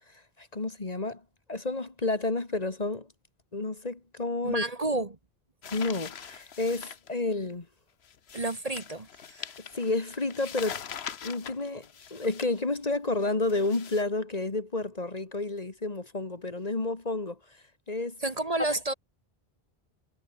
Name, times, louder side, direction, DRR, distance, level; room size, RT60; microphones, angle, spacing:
voice 1, 0.4-1.2 1.5-3.1 3.5-4.6 5.7-7.7 9.7-10.8 11.2-17.4 17.9-18.2 18.7-18.9, left 2 dB, 40° left, 1.9 m, -30 dB
voice 2, 4.4-5.2 8.3-9.5 18.2-18.9, right 2 dB, 40° right, 1.6 m, -30 dB
sound 1, 5.6-7.1 8.0-12.6 13.2-14.0, left 8 dB, 85° left, 1.2 m, -42 dB
omnidirectional pair, 1.0 m